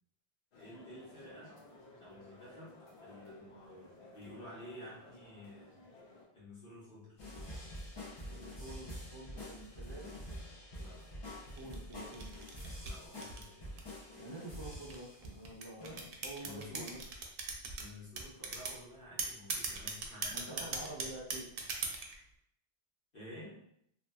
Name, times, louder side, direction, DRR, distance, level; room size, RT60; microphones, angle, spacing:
sound 1, 0.5-6.2, left 2 dB, 85° left, 0.9 m, -57 dB
voice 1, 0.6-1.6 2.0-5.8 6.3-7.2 10.8-11.3 12.8-13.7 16.4-16.9 17.8-21.0 23.1-23.5, left 1 dB, 60° left, -9 dB, 1.4 m, -51 dB
sound 2, 7.2-15.4 15.8-16.0, equal, 30° left, 0.6 m, -47 dB
voice 2, 8.3-10.2 11.6-12.3 14.1-17.0 20.3-21.5, right 1 dB, 35° right, -2 dB, 0.5 m, -48 dB
sound 3, 11.6-14.0 14.7-17.8 18.2-18.8 19.2-22.2, right 4 dB, 65° right, 0.7 m, -39 dB
2.7 x 2.6 x 2.2 m, 0.72 s
omnidirectional pair, 1.0 m